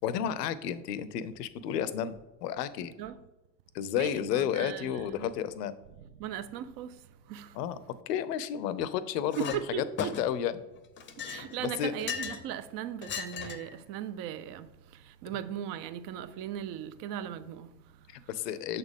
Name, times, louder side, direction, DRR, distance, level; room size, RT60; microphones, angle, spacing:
voice 1, 0.0-2.1 2.4-2.9 3.7-5.7 7.5-7.8 8.1-9.8 10.2-10.6 11.6-11.9 18.1-18.8, left 9 dB, 75° left, 0.6 m, -31 dB
voice 2, 3.9-5.4 6.0-7.6 9.4-10.2 11.2-18.3, right 10 dB, 45° right, 0.5 m, -38 dB
Chink clink, 9.3-9.6 10.0-10.5 11.0-12.5 13.0-13.7, left 7 dB, 25° left, 0.6 m, -38 dB
6.6 x 4.1 x 3.4 m
figure-of-eight pair, 60°, 49 cm